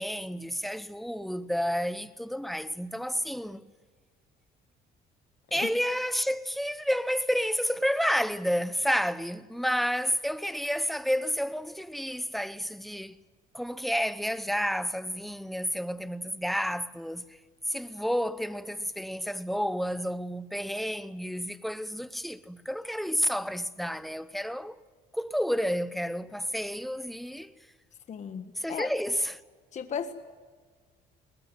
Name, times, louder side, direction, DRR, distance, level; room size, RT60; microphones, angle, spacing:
voice 1, 0.0-3.6 5.5-13.2 13.5-17.4 17.7-24.8 25.1-27.5 28.6-29.4, equal, ahead, 0.9 m, -30 dB
voice 2, 28.1-28.9 29.7-30.1, left 7 dB, 45° left, 1.5 m, -35 dB
21.0 x 20.0 x 9.5 m
cardioid pair, 110°, 17 cm